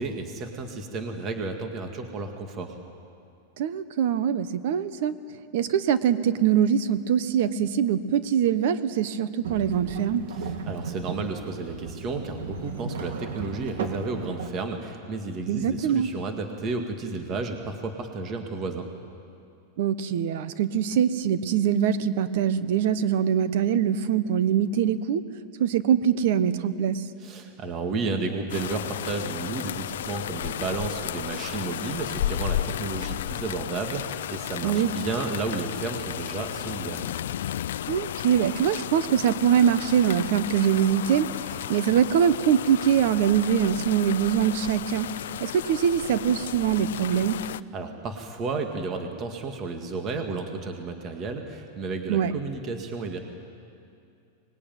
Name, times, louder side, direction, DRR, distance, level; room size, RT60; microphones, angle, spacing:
voice 1, 0.0-2.8 10.3-18.9 27.2-37.1 47.4-53.2, right 3 dB, 30° right, 4 dB, 2.1 m, -32 dB
voice 2, 3.6-5.2 5.5-10.2 15.5-16.1 19.8-25.2 25.6-27.0 34.6-34.9 37.9-45.1 45.4-47.4 52.1-52.3, right 8 dB, 60° right, 13 dB, 1.2 m, -23 dB
sound 1, 9.4-14.5, right 5 dB, 85° right, 2.6 m, -35 dB
sound 2, 28.5-47.6, left 11 dB, 80° left, 0.5 m, -33 dB
24.5 x 20.5 x 9.3 m, 2.5 s
supercardioid pair, 155°, 0 cm